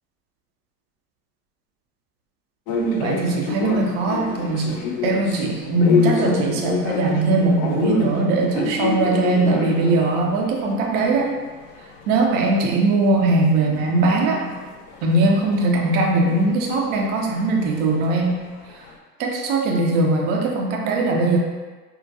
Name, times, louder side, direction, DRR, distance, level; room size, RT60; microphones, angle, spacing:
sound 1, 2.7-13.5 13.8-19.0, left 4 dB, 40° left, 0.5 m, -29 dB
voice 1, 2.8-11.3 12.1-14.6 15.0-18.4 19.2-21.4, right 2 dB, 25° right, 0 dB, 0.3 m, -20 dB
4.6 x 2.1 x 2.6 m, 1.3 s
figure-of-eight pair, 85°, 47 cm